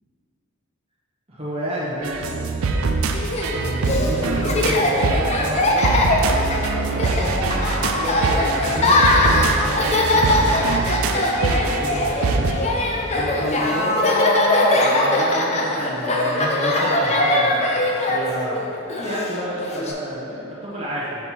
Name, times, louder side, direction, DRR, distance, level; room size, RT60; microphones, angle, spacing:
voice 1, 1.3-2.7 3.5-5.9 6.7-12.7 12.9-14.2 14.7-21.2, equal, 25° right, -8 dB, 1.1 m, -31 dB
sound 1, 2.0-12.5, right 3 dB, 75° right, 0.5 m, -24 dB
Laughter, 3.1-19.9, left 1 dB, 30° left, 0.6 m, -21 dB
5.8 x 5.2 x 4.5 m, 2.7 s
head